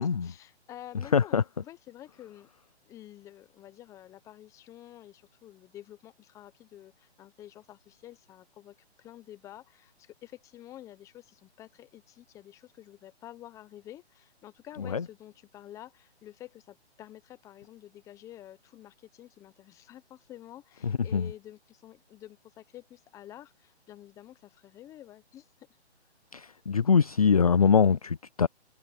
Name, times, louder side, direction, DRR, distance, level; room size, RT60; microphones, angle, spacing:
voice 1, 0.0-2.5 2.8-25.5, left 13 dB, 10° left, 1.1 m, -49 dB
voice 2, 1.1-1.4 14.9-15.0 20.8-21.3 26.3-28.5, left 6 dB, 35° left, 0.4 m, -23 dB
hypercardioid pair, 155°, 34 cm